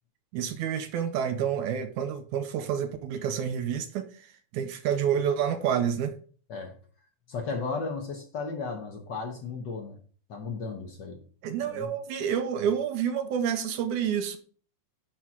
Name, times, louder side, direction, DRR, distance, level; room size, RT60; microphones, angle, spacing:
voice 1, 0.3-6.1 11.4-14.4, right 8 dB, 80° right, 2.2 m, -29 dB
voice 2, 7.3-10.0 10.3-11.2 11.7-11.9, left 4 dB, 75° left, 1.0 m, -35 dB
10.5 x 4.6 x 3.6 m
omnidirectional pair, 3.5 m